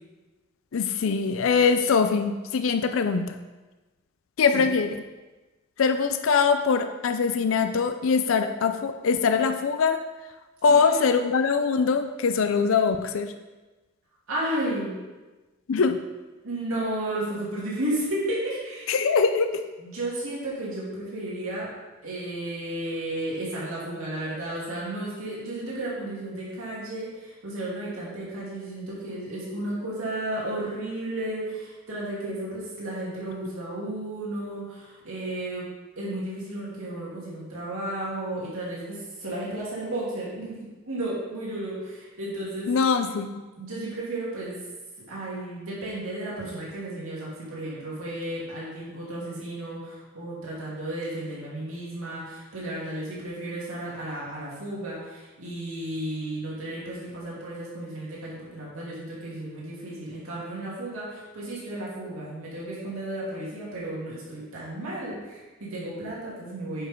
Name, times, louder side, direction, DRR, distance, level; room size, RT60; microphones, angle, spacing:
voice 1, 0.7-3.3 4.4-5.0 5.8-10.0 10.6-13.3 15.7-16.0 18.9-19.6 42.7-43.4, left 5 dB, 70° left, 8 dB, 0.5 m, -23 dB
voice 2, 10.7-11.0 14.3-14.9 16.4-19.0 19.8-21.7 22.0-35.7 36.0-42.7 43.6-44.6 45.1-66.9, right 1 dB, 90° right, -6 dB, 2.6 m, -33 dB
9.2 x 5.5 x 3.7 m, 1.2 s
head